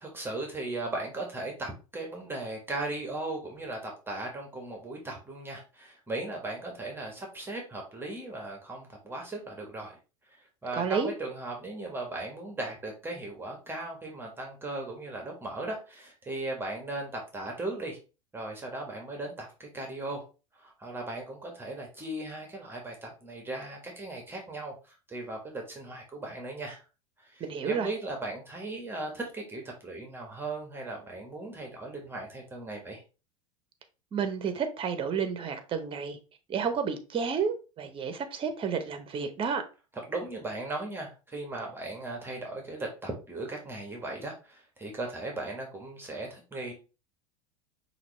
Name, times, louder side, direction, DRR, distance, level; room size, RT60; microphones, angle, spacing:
voice 1, 0.0-10.0 10.3-18.0 18.3-20.2 20.6-26.8 27.2-33.0 40.1-46.7, right 2 dB, 15° right, 1.4 m, -37 dB
voice 2, 10.8-11.1 27.4-27.9 34.1-36.2 36.5-39.6, right 6 dB, 30° right, 0.9 m, -31 dB
5.7 x 2.8 x 3.2 m
hypercardioid pair, 90°, 17 cm